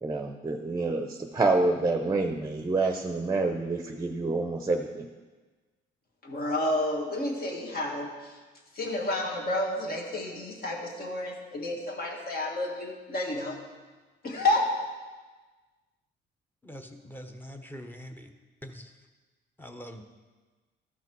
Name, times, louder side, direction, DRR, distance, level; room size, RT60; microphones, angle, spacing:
voice 1, 0.0-5.1, right 3 dB, 20° right, 5 dB, 0.7 m, -27 dB
voice 2, 6.2-8.4 8.7-13.6 14.2-14.7, left 1 dB, 50° left, 0 dB, 2.0 m, -30 dB
voice 3, 16.6-18.3 18.6-18.9 19.6-20.0, equal, 10° left, 5 dB, 1.0 m, -43 dB
13.5 x 5.8 x 4.6 m, 1.3 s
cardioid pair, 90°, 20 cm